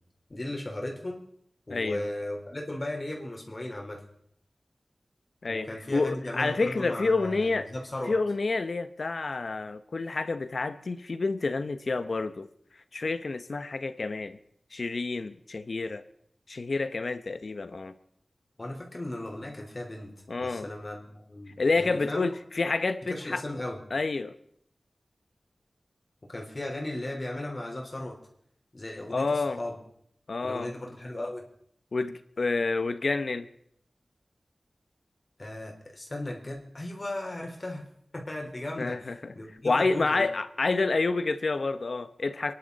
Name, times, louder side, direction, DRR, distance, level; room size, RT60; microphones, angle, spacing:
voice 1, 0.3-1.2 1.7-4.0 5.5-8.2 18.6-20.1 20.4-22.3 23.1-23.8 26.3-28.2 28.7-29.8 30.4-31.5 35.4-37.9 38.1-40.3, left 1 dB, 45° left, 0 dB, 4.2 m, -36 dB
voice 2, 1.7-2.1 5.4-7.7 8.1-12.5 12.9-14.4 14.7-16.0 16.5-17.9 20.3-20.7 21.6-23.4 23.9-24.3 29.1-29.6 30.3-30.7 31.9-33.5 38.8-39.3 39.6-42.5, left 3 dB, 75° left, 11 dB, 1.0 m, -29 dB
24.5 x 11.0 x 4.2 m, 0.68 s
cardioid pair, 45°, 0 cm